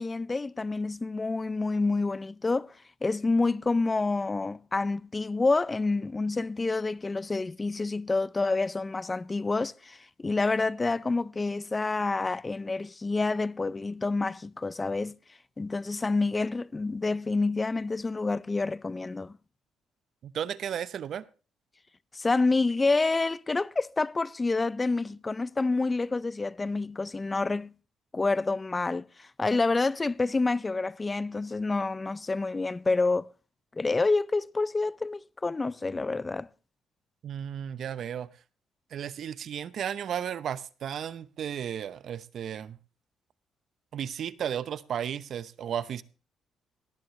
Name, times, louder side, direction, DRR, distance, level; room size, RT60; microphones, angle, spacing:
voice 1, 0.0-15.2 15.6-19.4 22.1-27.7 28.1-33.3 33.7-36.5, left 3 dB, 25° left, 0.5 m, -28 dB
voice 2, 20.2-21.2 37.2-38.3 38.9-42.8 43.9-46.0, right 9 dB, 65° right, 0.8 m, -34 dB
18.0 x 10.5 x 3.2 m
cardioid pair, 90°, 0 cm